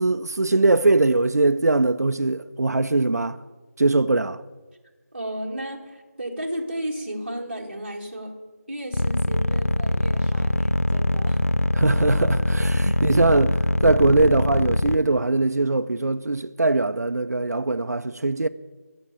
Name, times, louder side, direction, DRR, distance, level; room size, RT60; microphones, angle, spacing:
voice 1, 0.0-3.4 3.8-4.4 11.8-18.5, right 2 dB, 75° right, 0.5 m, -21 dB
voice 2, 5.1-8.3 8.7-11.4, right 1 dB, 40° right, 2.0 m, -33 dB
sound 1, 8.9-15.0, left 2 dB, 60° left, 0.5 m, -22 dB
14.0 x 6.5 x 9.8 m
figure-of-eight pair, 180°, 9 cm